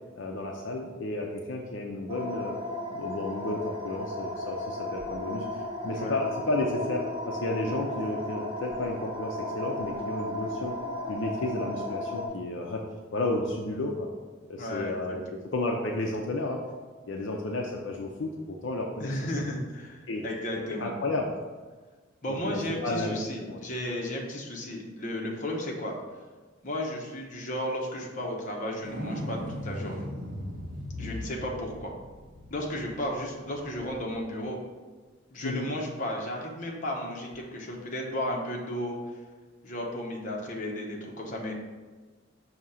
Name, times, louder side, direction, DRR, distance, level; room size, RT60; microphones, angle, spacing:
voice 1, 0.2-2.6 2.9-10.7 11.1-12.9 13.1-14.1 14.5-15.2 15.5-16.6 17.1-19.2 20.1-20.2 20.8-21.3 22.3-23.6 31.0-31.2 35.4-35.7, left 2 dB, 70° left, 0 dB, 0.6 m, -32 dB
sound 1, 2.1-12.3, left 1 dB, 30° right, 1.2 m, -35 dB
voice 2, 14.6-15.2 19.0-20.9 22.2-25.9 26.6-30.0 31.0-31.9 32.5-34.6 35.3-39.0 39.6-41.5, left 1 dB, 40° left, -1 dB, 1.0 m, -34 dB
sound 2, 28.8-34.2 37.3-37.4, left 1 dB, 90° right, 1.1 m, -38 dB
6.1 x 2.8 x 5.5 m, 1.4 s
head